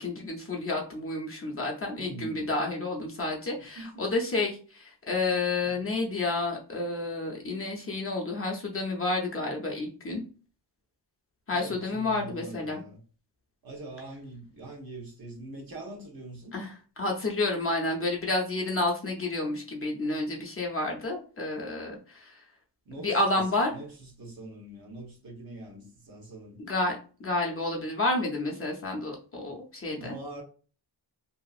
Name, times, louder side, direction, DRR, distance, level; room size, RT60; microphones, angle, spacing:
voice 1, 0.0-10.2 11.5-12.8 16.5-16.7 17.0-22.3 23.0-23.7 26.6-30.2, left 2 dB, 30° left, 0.6 m, -30 dB
voice 2, 2.0-2.5 3.6-4.1 5.6-5.9 11.5-13.0 13.6-16.5 22.9-26.6 29.9-30.4, right 2 dB, 55° right, 0.9 m, -43 dB
2.7 x 2.4 x 2.4 m
wide cardioid pair, 120°, 42 cm